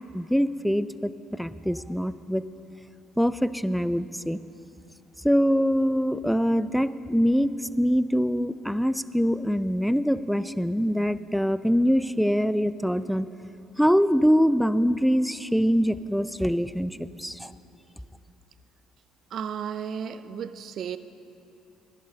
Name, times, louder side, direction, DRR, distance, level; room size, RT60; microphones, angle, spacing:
voice 1, 0.1-2.4 3.2-4.4 5.2-13.3 13.8-17.5, equal, ahead, 0.4 m, -24 dB
voice 2, 19.3-21.0, right 8 dB, 60° right, 0.4 m, -33 dB
15.0 x 11.0 x 3.8 m
hypercardioid pair, 55°, 0 cm